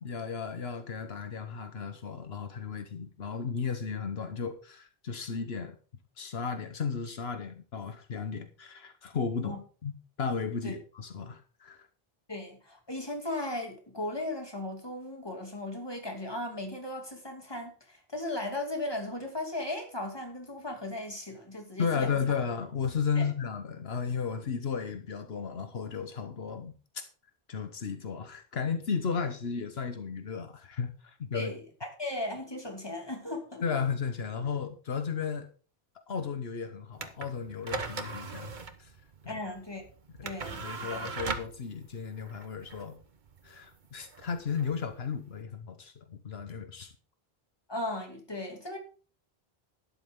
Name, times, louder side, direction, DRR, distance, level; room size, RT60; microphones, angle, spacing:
voice 1, 0.0-5.8 6.2-9.9 10.2-11.9 21.8-27.0 27.5-31.5 33.6-35.5 36.1-38.9 39.2-39.3 40.2-40.3 40.6-43.0 43.4-46.9, left 6 dB, 80° left, 1.3 m, -34 dB
voice 2, 12.3-22.1 23.2-23.3 31.3-33.6 39.3-39.8 40.2-41.1 47.7-48.8, left 1 dB, 25° left, 2.6 m, -37 dB
sound 1, 36.9-45.4, right 4 dB, 50° right, 1.2 m, -40 dB
12.0 x 11.0 x 3.7 m
omnidirectional pair, 1.0 m